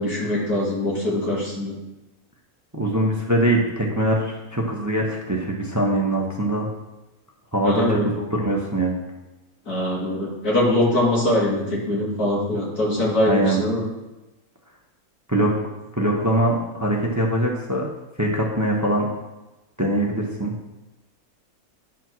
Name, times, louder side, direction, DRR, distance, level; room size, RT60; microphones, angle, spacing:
voice 1, 0.0-1.7 7.6-8.0 9.7-13.8, left 1 dB, 80° left, -6 dB, 3.3 m, -22 dB
voice 2, 2.7-6.7 7.5-9.0 13.2-13.6 15.3-15.6 16.0-17.9 18.2-19.1 19.8-20.5, right 1 dB, 15° right, -1 dB, 0.9 m, -22 dB
10.5 x 4.5 x 6.1 m, 1.0 s
omnidirectional pair, 1.6 m